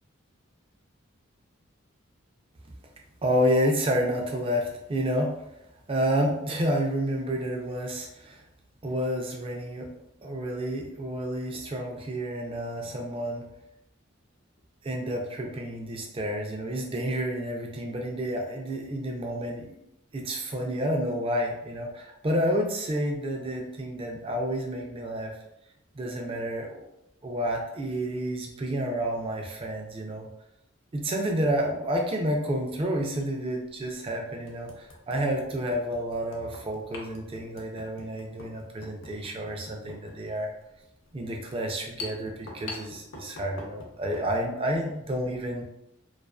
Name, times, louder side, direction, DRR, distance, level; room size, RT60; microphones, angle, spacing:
voice 1, 3.2-5.4 5.9-8.4 8.8-9.9 10.2-13.5 14.8-19.8 20.1-25.4 25.9-26.8 27.2-30.3 30.9-40.5 41.1-45.6, equal, 25° right, 1 dB, 0.3 m, -30 dB
sound 1, 31.6-31.7 33.2-33.3 33.8-33.9 34.5-44.3, left 3 dB, 65° left, 0.5 m, -45 dB
2.4 x 2.3 x 2.3 m, 0.84 s
head